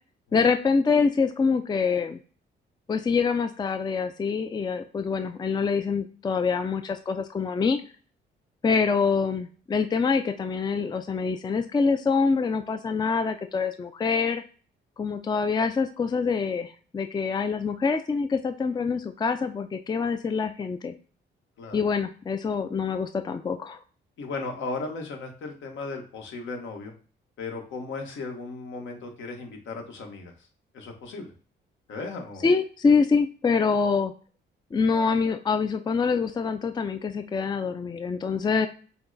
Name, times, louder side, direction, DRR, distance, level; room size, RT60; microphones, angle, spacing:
voice 1, 0.3-2.2 2.9-7.8 8.6-14.4 15.0-20.9 21.7-23.8 32.4-34.1 34.7-38.7, left 5 dB, 20° left, 8 dB, 0.4 m, -25 dB
voice 2, 24.2-26.9 27.4-30.5 30.7-31.3 31.9-32.5, left 3 dB, 75° left, 2 dB, 1.4 m, -36 dB
5.7 x 2.2 x 4.0 m, 0.41 s
cardioid pair, 90°, 20 cm